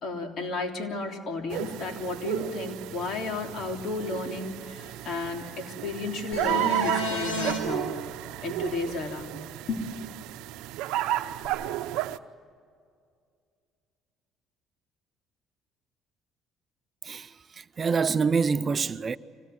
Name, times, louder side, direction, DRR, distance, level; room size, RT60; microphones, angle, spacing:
voice 1, 0.0-7.9 8.4-9.4 9.7-9.9, left 3 dB, 60° left, 3.3 m, -33 dB
sound 1, 1.5-12.2, right 13 dB, 80° right, 0.8 m, -33 dB
sound 2, 6.3-7.6 11.4-11.5, equal, 85° left, 6.8 m, -30 dB
voice 2, 17.0-19.2, right 5 dB, 40° right, 0.6 m, -26 dB
25.5 x 17.5 x 9.5 m
supercardioid pair, 85°, 0 cm